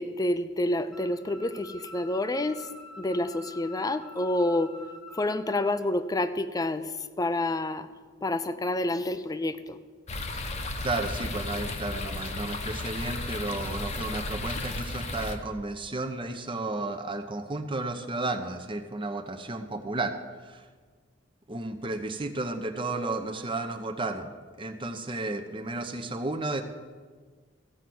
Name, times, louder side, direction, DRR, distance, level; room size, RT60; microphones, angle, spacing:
voice 1, 0.0-2.7 3.0-4.7 5.2-6.9 7.2-7.9 8.2-9.8, left 1 dB, 20° left, 12 dB, 0.5 m, -28 dB
sound 1, 0.9-5.8, left 1 dB, ahead, 1.0 m, -47 dB
sound 2, 10.1-15.4, left 2 dB, 35° left, 1.0 m, -34 dB
voice 2, 10.8-20.1 20.4-20.7 21.5-24.3 24.6-26.6, right 2 dB, 25° right, 6 dB, 0.7 m, -33 dB
15.5 x 5.7 x 7.7 m, 1.5 s
head